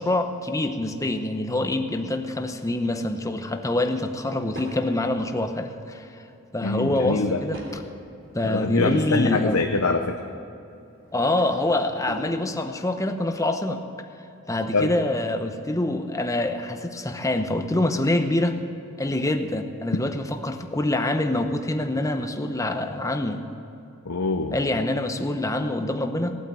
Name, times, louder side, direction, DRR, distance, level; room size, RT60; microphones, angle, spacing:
voice 1, 0.0-6.1 6.5-7.6 8.3-9.6 11.1-13.8 14.5-18.6 19.0-23.4 24.5-26.4, left 1 dB, 15° left, 6 dB, 0.8 m, -25 dB
Drawer open or close / Wood, 3.9-4.8 6.5-7.8 8.3-9.5 10.8-12.3, right 1 dB, 65° right, 3.2 m, -44 dB
voice 2, 6.6-7.4 8.4-10.2 14.7-14.9 24.1-24.6, left 3 dB, 85° left, 5 dB, 0.8 m, -24 dB
17.5 x 9.1 x 7.6 m, 2.7 s
head